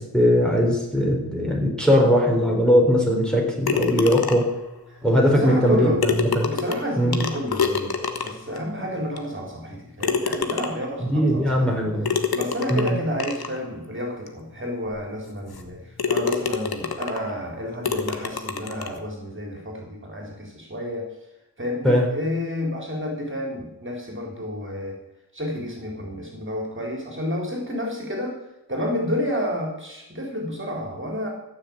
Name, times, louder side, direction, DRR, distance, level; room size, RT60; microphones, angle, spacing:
voice 1, 0.0-4.5 5.0-6.5 7.0-7.2 11.0-12.1 12.7-13.0 21.8-22.1, equal, ahead, -1 dB, 4.1 m, -20 dB
sound 1, 3.7-4.6 5.7-5.8 6.0-8.6 9.2-9.3 10.0-11.0 12.1-13.6 14.3-14.4 14.9-15.0 15.5-15.7 16.0-17.3 17.8-19.0, left 5 dB, 75° left, 1.4 m, -27 dB
voice 2, 5.3-6.0 6.4-8.0 8.2-11.9 12.3-15.8 16.1-21.1 21.6-25.0 25.3-28.4 28.7-31.3, left 1 dB, 30° right, 0 dB, 3.8 m, -30 dB
14.5 x 6.7 x 8.7 m, 0.94 s
wide cardioid pair, 70°, 37 cm